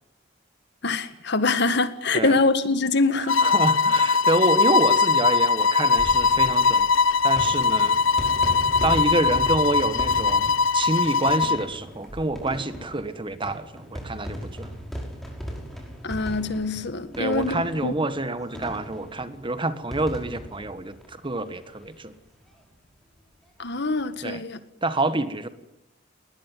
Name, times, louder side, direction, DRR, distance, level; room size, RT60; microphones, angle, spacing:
voice 1, 0.8-3.4 16.0-17.9 23.6-24.6, left 3 dB, 60° left, 1.8 m, -24 dB
voice 2, 3.2-6.9 7.2-8.0 8.8-14.7 17.2-22.1 24.2-24.4 24.8-25.5, right 2 dB, 25° right, 1.5 m, -27 dB
sound 1, 3.3-11.7, left 5 dB, 85° left, 0.8 m, -21 dB
sound 2, 5.9-21.9 22.2-22.3 22.5-22.6 23.9-24.1, equal, ahead, 5.5 m, -37 dB
21.0 x 19.5 x 9.3 m
head